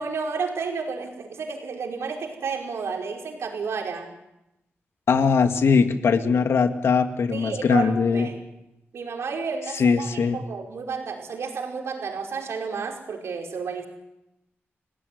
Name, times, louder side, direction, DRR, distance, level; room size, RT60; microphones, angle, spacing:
voice 1, 0.0-4.1 7.3-8.4 8.9-13.9, right 5 dB, 80° right, 2 dB, 5.2 m, -31 dB
voice 2, 5.1-8.3 9.8-10.4, left 5 dB, 75° left, 7 dB, 2.1 m, -21 dB
30.0 x 18.0 x 9.5 m, 0.90 s
wide cardioid pair, 160°, 4 cm